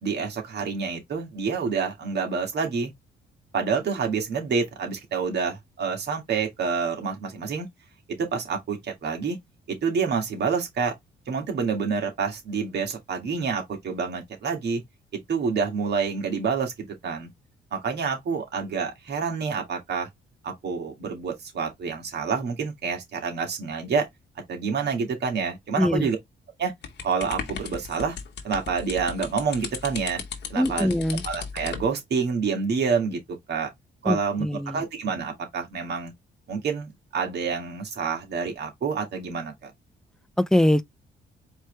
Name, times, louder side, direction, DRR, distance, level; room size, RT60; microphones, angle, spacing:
voice 1, 0.0-2.9 3.5-7.7 8.1-9.4 9.7-10.9 11.3-14.8 15.3-17.3 17.7-20.1 20.4-24.1 24.5-26.2 26.6-26.7 27.0-28.2 28.4-30.2 30.5-30.9 31.2-33.2 33.5-33.7 34.0-36.1 36.5-39.7, right 5 dB, 55° right, 2.1 m, -28 dB
voice 2, 25.8-26.1 30.6-31.2 34.1-34.8 40.4-40.8, left 1 dB, 5° left, 0.4 m, -22 dB
sound 1, 26.8-31.9, left 7 dB, 60° left, 1.3 m, -36 dB
4.5 x 3.1 x 3.4 m
cardioid pair, 90°, 20 cm